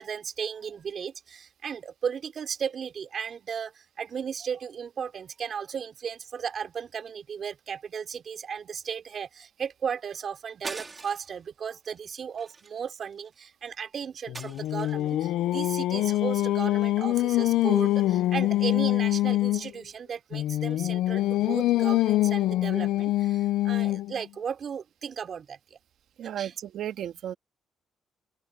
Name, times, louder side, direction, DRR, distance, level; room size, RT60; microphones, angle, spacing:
voice 1, 0.0-25.8 26.2-26.5, right 7 dB, 55° right, 3.6 m, -35 dB
sound 1, 10.6-11.4 11.8-12.0 12.4-13.3 14.3-15.1, right 3 dB, 30° right, 3.1 m, -41 dB
Singing, 14.3-19.7 20.3-24.2, left 15 dB, 85° left, 0.5 m, -25 dB
voice 2, 26.2-27.3, right 11 dB, 75° right, 2.0 m, -34 dB
open air
cardioid pair, 90°, 0 cm